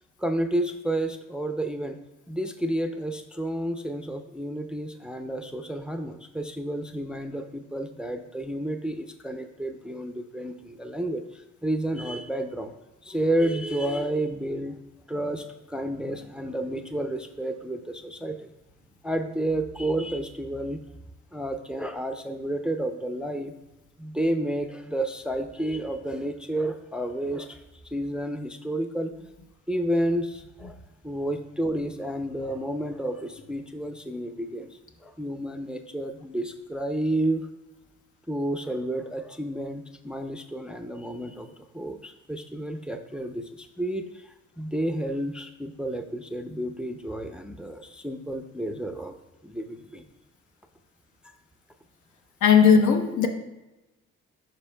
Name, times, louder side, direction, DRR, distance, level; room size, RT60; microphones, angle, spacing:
voice 1, 0.2-2.0 2.3-12.7 13.0-14.8 15.1-18.5 19.0-20.8 21.3-23.5 24.0-27.6 27.9-29.1 29.7-30.8 31.0-34.7 35.0-37.5 38.3-41.5 41.7-44.0 44.6-49.1 49.4-50.0, right 1 dB, 5° right, 7 dB, 0.4 m, -30 dB
voice 2, 52.4-53.3, left 7 dB, 75° left, 4 dB, 0.9 m, -17 dB
11.0 x 4.4 x 2.2 m, 1.0 s
cardioid pair, 90°, 30 cm